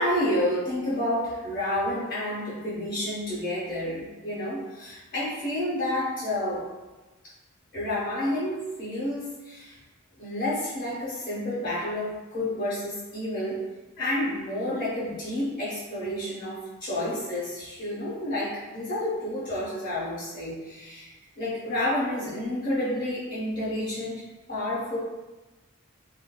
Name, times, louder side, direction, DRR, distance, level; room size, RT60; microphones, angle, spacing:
voice 1, 0.0-6.7 7.7-9.8 10.2-13.6 14.0-24.2 24.5-25.0, left 1 dB, 40° left, -10 dB, 1.0 m, -30 dB
3.3 x 2.5 x 2.2 m, 1.1 s
head